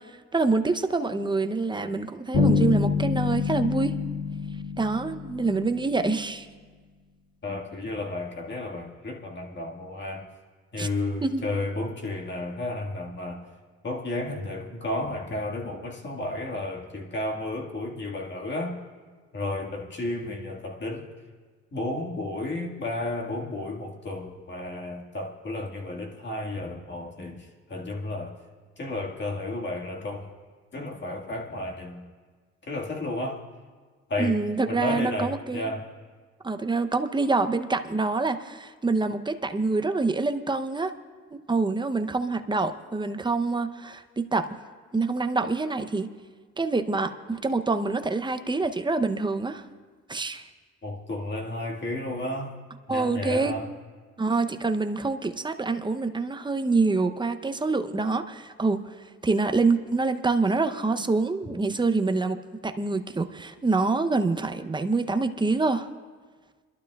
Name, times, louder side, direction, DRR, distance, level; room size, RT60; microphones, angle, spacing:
voice 1, 0.3-4.0 4.8-6.5 10.8-10.9 11.2-11.5 34.2-35.7 36.4-40.9 41.3-44.5 44.9-46.1 46.6-49.7 50.1-50.5 52.9-53.5 54.2-59.0 59.2-62.4 62.6-65.9, right 3 dB, 15° right, 8 dB, 0.7 m, -26 dB
Bass guitar, 2.3-6.1, left 5 dB, 75° left, 2.4 m, -26 dB
voice 2, 7.4-10.3 10.7-13.5 13.8-18.8 19.3-21.1 21.7-28.4 28.8-30.3 30.7-32.1 32.6-33.4 34.1-34.4 34.7-35.8 50.8-52.6 52.9-53.7, left 2 dB, 35° left, -1 dB, 1.8 m, -32 dB
28.5 x 12.0 x 2.4 m, 1.5 s
cardioid pair, 90°, 30 cm